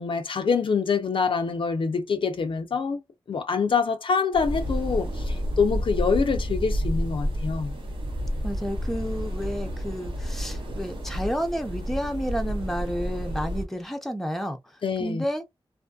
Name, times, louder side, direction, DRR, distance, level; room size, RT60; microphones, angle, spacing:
voice 1, 0.0-3.0 3.3-7.8 14.8-15.2, left 5 dB, 75° left, 0.5 m, -25 dB
sound 1, 4.3-13.6, equal, 75° right, 0.8 m, -30 dB
voice 2, 8.4-14.6 15.0-15.4, equal, 5° left, 0.6 m, -31 dB
2.6 x 2.5 x 2.3 m
wide cardioid pair, 70°, 9 cm